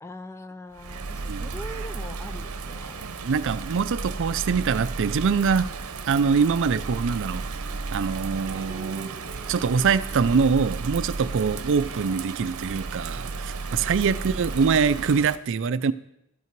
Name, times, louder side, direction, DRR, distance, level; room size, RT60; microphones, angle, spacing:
voice 1, 0.0-3.0 14.0-14.7, left 1 dB, 15° left, 10 dB, 0.6 m, -42 dB
Bird vocalization bird call bird song / Rain, 0.7-15.4, right 4 dB, 80° right, 0.8 m, -34 dB
voice 2, 3.0-5.7 6.1-7.6 7.9-9.1 9.5-15.9, right 5 dB, 60° right, 14 dB, 0.4 m, -24 dB
sound 1, 5.5-11.3 11.6-15.1, right 2 dB, 10° right, 1.5 m, -48 dB
13.0 x 8.5 x 4.6 m, 0.81 s
head